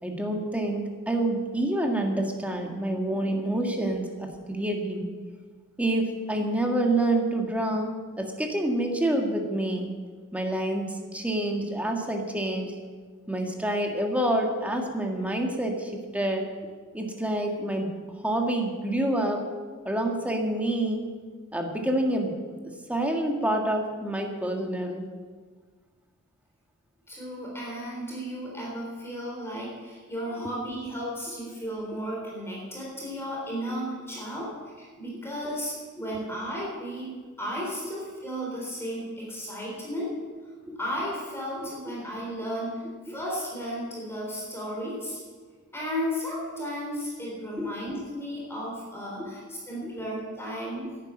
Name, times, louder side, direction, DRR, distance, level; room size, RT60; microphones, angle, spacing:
voice 1, 0.0-5.1 5.8-9.9 10.3-12.7 13.3-16.5 16.9-17.9 18.2-19.5 19.8-21.1 21.5-22.4 22.6-25.1 40.7-40.8 41.6-42.0 43.1-43.2 47.6-47.7 49.2-49.3 49.8-49.9, right 1 dB, 5° right, 2 dB, 1.8 m, -27 dB
voice 2, 27.1-34.5 34.8-37.1 37.4-40.1 40.8-45.2 45.7-50.9, equal, 10° left, -4 dB, 3.9 m, -34 dB
12.0 x 10.5 x 9.0 m, 1.5 s
head